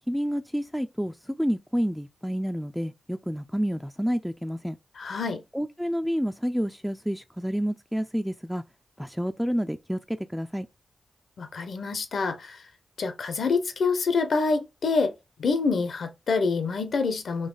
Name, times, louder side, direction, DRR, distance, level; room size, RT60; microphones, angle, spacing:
voice 1, 0.1-4.8 5.5-8.6 9.0-10.7, equal, ahead, 0.4 m, -29 dB
voice 2, 5.0-5.4 11.4-12.6 13.0-15.1 15.4-17.5, left 4 dB, 75° left, 0.8 m, -26 dB
3.9 x 2.8 x 3.9 m
cardioid pair, 50°, 0 cm